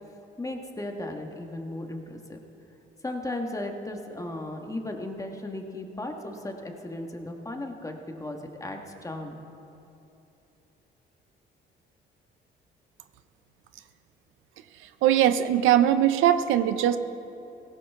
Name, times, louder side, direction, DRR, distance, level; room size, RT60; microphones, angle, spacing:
voice 1, 0.4-2.4 3.0-9.4, left 1 dB, 15° left, 3 dB, 1.6 m, -36 dB
voice 2, 15.0-17.0, right 11 dB, 90° right, 11 dB, 0.6 m, -21 dB
17.5 x 17.0 x 3.6 m, 2.9 s
cardioid pair, 90°, 20 cm